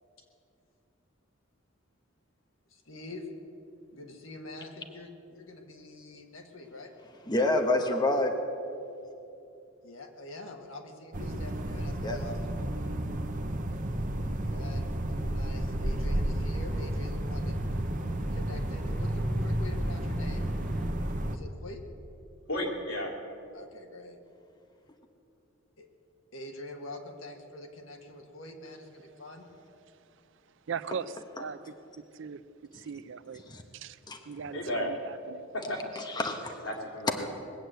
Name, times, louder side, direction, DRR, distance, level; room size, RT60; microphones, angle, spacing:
voice 1, 2.7-3.3 3.9-6.9 9.8-12.6 14.3-17.6 18.3-20.5 21.3-21.8 23.5-24.2 25.8-25.9 26.3-29.5, left 2 dB, 70° left, 3 dB, 1.8 m, -45 dB
voice 2, 7.3-8.3 12.0-12.2 33.5-33.6 34.1-34.2 36.0-36.6, left 2 dB, 20° left, 4 dB, 1.0 m, -27 dB
sound 1, 11.1-21.4, right 1 dB, 40° right, 0.9 m, -32 dB
sound 2, 14.8-20.9, equal, 5° left, 0.5 m, -40 dB
voice 3, 22.5-23.1 34.5-34.9 35.5-35.8 36.6-37.3, left 1 dB, 90° left, -1 dB, 3.2 m, -33 dB
voice 4, 30.7-31.6 32.1-32.4 32.7-33.4 33.7-34.0 34.3-35.5, right 6 dB, 65° right, 14 dB, 0.5 m, -39 dB
20.5 x 8.0 x 7.9 m, 2.7 s
head